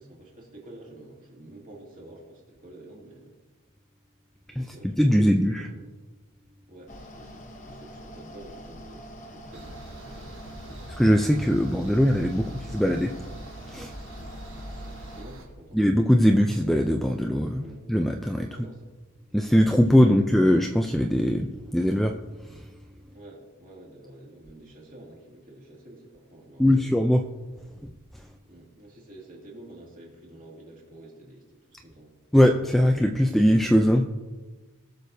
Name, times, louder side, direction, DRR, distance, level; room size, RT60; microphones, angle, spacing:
voice 1, 0.0-3.3 4.5-5.8 6.7-11.0 12.4-12.9 15.1-15.9 17.6-17.8 18.4-18.9 20.0-20.3 23.1-26.8 28.4-32.1, right 1 dB, 35° right, -4 dB, 2.7 m, -48 dB
voice 2, 5.0-5.7 11.0-13.1 13.7-13.9 15.7-18.7 19.3-22.7 26.6-27.2 28.1-28.3 32.3-34.0, equal, ahead, 3 dB, 0.3 m, -21 dB
Mechanical fan, 6.9-15.2, equal, 35° left, 0.9 m, -44 dB
sound 1, 9.5-15.5, right 1 dB, 60° right, 1.3 m, -42 dB
19.0 x 6.6 x 2.7 m, 1.3 s
head